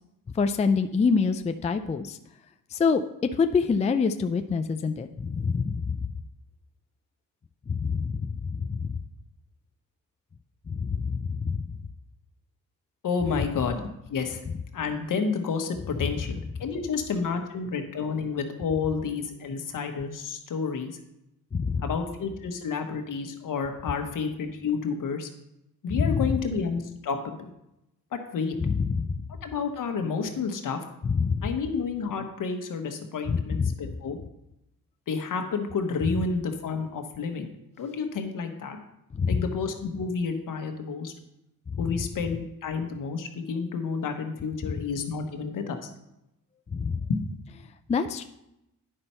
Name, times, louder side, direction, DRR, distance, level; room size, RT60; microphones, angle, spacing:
voice 1, 0.3-2.2 2.7-3.0 3.4-6.1 7.7-9.0 10.7-11.6 21.5-21.8 25.9-26.3 28.6-29.2 31.0-31.4 33.3-33.7 39.1-39.5 44.7-44.8 46.7-47.0 47.9-48.2, left 5 dB, 20° left, 7 dB, 0.4 m, -26 dB
voice 2, 13.0-13.8 14.1-14.4 14.7-21.0 21.8-25.3 25.8-27.5 28.1-28.5 29.4-30.8 31.4-34.2 35.1-37.5 37.8-38.8 39.3-41.1 41.8-45.9 47.1-47.2, left 5 dB, 65° left, 5 dB, 1.2 m, -30 dB
9.9 x 5.5 x 4.4 m, 0.86 s
cardioid pair, 90°, 35 cm